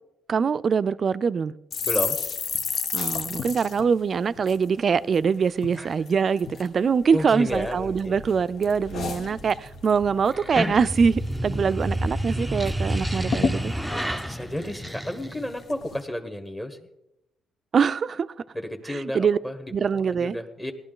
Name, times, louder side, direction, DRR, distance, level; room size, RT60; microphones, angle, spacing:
voice 1, 0.3-1.5 2.9-13.7 17.7-18.3 18.9-19.4 19.7-20.4, right 6 dB, 45° right, 0.4 m, -23 dB
sound 1, 1.7-5.2 5.6-5.8 6.1-6.7 7.2-8.0 8.3-10.0 10.3-10.5 10.8-11.3 11.7-11.8 12.1-12.7 13.0-13.1 13.3-15.2 15.7-16.0, left 6 dB, 65° left, 1.1 m, -32 dB
voice 2, 1.8-2.2 5.8-5.9 7.1-8.2 14.2-16.8 18.5-19.6 20.2-20.7, left 1 dB, 15° left, 1.3 m, -31 dB
sound 2, 6.8-13.0, equal, 85° left, 2.9 m, -45 dB
sound 3, 10.3-15.6, equal, 5° right, 0.6 m, -29 dB
17.5 x 11.5 x 3.8 m
cardioid pair, 90°, 0 cm